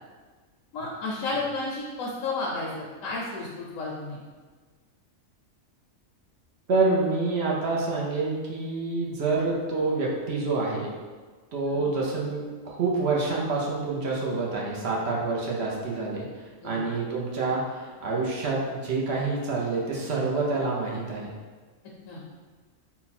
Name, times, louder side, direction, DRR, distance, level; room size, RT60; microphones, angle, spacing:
voice 1, 0.7-4.2 11.7-11.9 16.6-16.8 22.1-22.2, left 3 dB, 75° left, -4 dB, 1.0 m, -32 dB
voice 2, 6.7-10.9 11.5-21.4, right 3 dB, 60° right, -3 dB, 0.9 m, -27 dB
3.9 x 2.2 x 4.1 m, 1.4 s
omnidirectional pair, 1.4 m